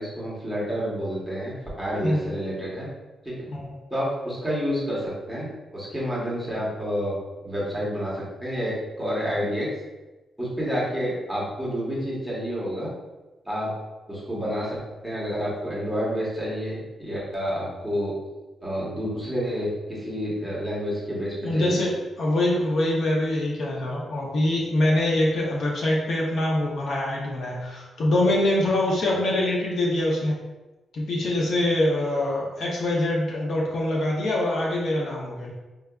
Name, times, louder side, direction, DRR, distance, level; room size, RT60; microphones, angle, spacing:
voice 1, 0.0-2.9 3.2-3.4 3.9-9.7 10.4-12.9 13.4-13.7 14.1-14.8 15.0-18.2 18.6-21.8, equal, ahead, -7 dB, 0.9 m, -29 dB
voice 2, 21.4-21.9 22.2-30.4 30.9-35.5, left 1 dB, 55° left, -3 dB, 0.6 m, -24 dB
4.5 x 2.3 x 2.2 m, 1.1 s
wide cardioid pair, 165°, 0 cm